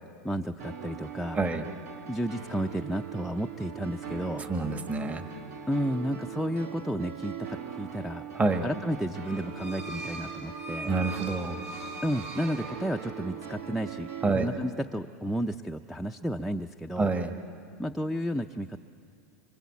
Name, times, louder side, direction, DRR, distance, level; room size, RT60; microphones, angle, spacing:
voice 1, 0.2-1.4 2.1-4.4 5.7-7.3 7.7-8.2 8.6-10.9 12.0-14.1 14.4-17.1 17.8-18.8, equal, ahead, 3 dB, 0.6 m, -32 dB
sound 1, 0.6-14.3, right 7 dB, 75° right, 2.2 m, -41 dB
voice 2, 1.3-1.6 4.4-5.2 8.3-8.7 10.8-11.6 14.2-14.5 17.0-17.3, right 3 dB, 20° right, 6 dB, 1.4 m, -27 dB
sound 2, 9.2-13.4, right 2 dB, 50° right, 5.0 m, -41 dB
26.0 x 25.0 x 8.4 m, 2.5 s
supercardioid pair, 125°, 8 cm